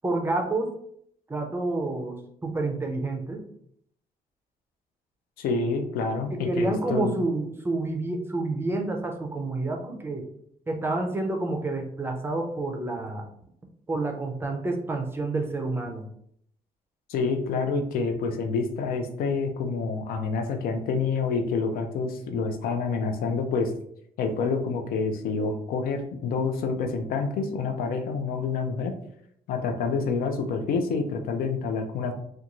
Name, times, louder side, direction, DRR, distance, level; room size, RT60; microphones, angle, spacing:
voice 1, 0.0-0.7 1.3-3.4 6.3-10.3 10.7-13.3 13.9-16.1, right 2 dB, 15° right, 3 dB, 0.4 m, -29 dB
voice 2, 5.4-7.1 17.1-23.7 24.2-28.9 29.5-32.1, left 4 dB, 85° left, 5 dB, 0.4 m, -27 dB
2.5 x 2.2 x 2.9 m, 0.69 s
cardioid pair, 130°, 15 cm